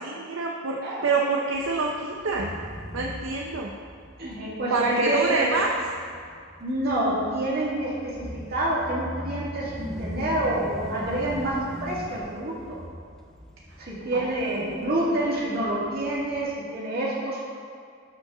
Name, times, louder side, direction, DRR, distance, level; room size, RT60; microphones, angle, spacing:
voice 1, 0.0-2.5 2.9-3.7 4.7-5.8 14.1-15.2, right 3 dB, 65° right, -1 dB, 0.7 m, -27 dB
sound 1, 1.5-16.5, equal, ahead, 0.8 m, -41 dB
voice 2, 4.2-5.6 6.6-8.1 8.5-11.5 11.8-12.5 13.8-17.4, right 1 dB, 50° right, -6 dB, 2.1 m, -27 dB
12.5 x 5.2 x 3.8 m, 2.2 s
head